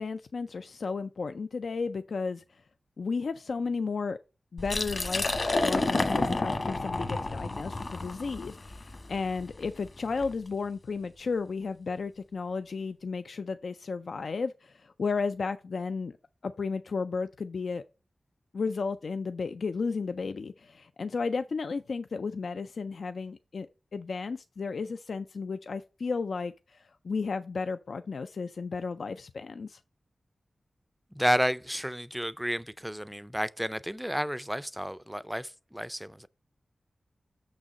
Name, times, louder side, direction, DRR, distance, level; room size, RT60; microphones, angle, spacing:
voice 1, 0.0-2.6 3.0-4.2 4.5-5.3 5.6-16.2 16.4-17.8 18.5-23.7 23.9-29.8, left 4 dB, 75° left, 0.3 m, -33 dB
Liquid, 4.6-10.3, left 2 dB, 50° left, 1.2 m, -30 dB
voice 2, 31.2-36.3, equal, 5° right, 0.4 m, -31 dB
6.3 x 6.2 x 4.1 m
wide cardioid pair, 75°, 0 cm